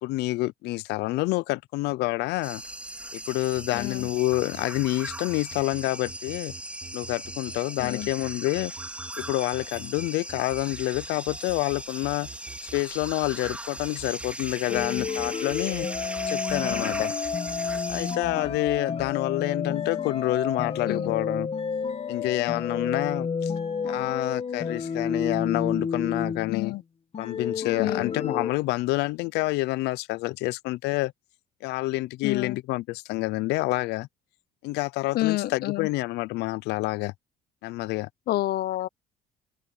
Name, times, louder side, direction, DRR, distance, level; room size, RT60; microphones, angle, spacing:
voice 1, 0.0-2.6 3.1-6.5 6.9-8.7 9.2-12.3 12.7-15.9 16.3-17.2 17.9-21.5 22.1-23.5 23.8-26.7 27.2-31.1 31.6-34.1 34.6-37.1 37.6-38.1, left 20 dB, 90° left, 0.5 m, -28 dB
sound 1, 2.4-18.2, right 1 dB, 5° right, 4.7 m, -38 dB
sound 2, 3.6-19.1, right 6 dB, 35° right, 3.6 m, -46 dB
voice 2, 3.7-4.1 7.8-8.1 16.6-17.0 20.9-21.1 26.5-26.8 27.8-28.1 32.2-32.6 35.1-35.9 38.3-38.9, left 16 dB, 70° left, 0.9 m, -29 dB
sound 3, 14.7-26.7 27.1-28.5, left 6 dB, 35° left, 2.0 m, -30 dB
cardioid pair, 110°, 17 cm